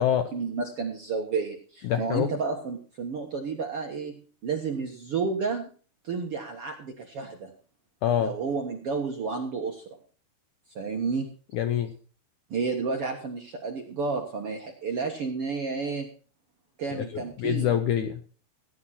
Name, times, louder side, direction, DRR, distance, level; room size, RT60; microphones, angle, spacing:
voice 1, 0.3-5.7 6.0-7.5 8.2-10.0 10.7-11.3 12.5-16.1 16.8-17.7, right 4 dB, 60° right, 2 dB, 1.5 m, -31 dB
voice 2, 1.8-2.3 8.0-8.3 11.5-11.9 16.9-17.1 17.4-18.2, left 10 dB, 75° left, 8 dB, 1.9 m, -25 dB
16.0 x 10.0 x 4.2 m, 0.40 s
omnidirectional pair, 4.5 m